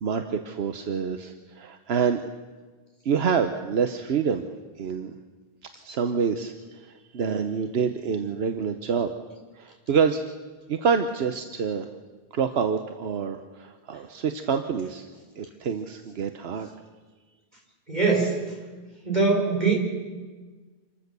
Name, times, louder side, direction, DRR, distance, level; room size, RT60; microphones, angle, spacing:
voice 1, 0.0-2.2 3.0-4.4 4.8-5.1 5.8-9.1 9.5-10.2 10.7-11.9 12.3-15.1 15.4-16.7, right 6 dB, 80° right, 7 dB, 1.1 m, -27 dB
voice 2, 17.9-18.3 19.0-19.7, right 4 dB, 45° right, 0 dB, 4.8 m, -22 dB
27.0 x 14.5 x 6.8 m, 1.4 s
omnidirectional pair, 1.0 m